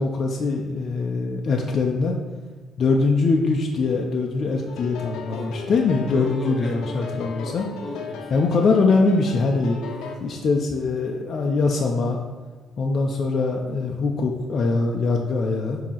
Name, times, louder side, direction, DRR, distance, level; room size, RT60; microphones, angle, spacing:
voice 1, 0.0-2.2 2.8-7.7 8.3-9.8 10.2-12.2 12.8-15.8, left 3 dB, 35° left, 1 dB, 0.5 m, -22 dB
sound 1, 4.7-10.2, left 4 dB, 90° left, 0.8 m, -37 dB
voice 2, 5.3-5.7 6.1-8.3 9.8-10.3, left 2 dB, 5° left, 0 dB, 0.9 m, -37 dB
7.4 x 2.8 x 5.6 m, 1.4 s
cardioid pair, 175°, 0 cm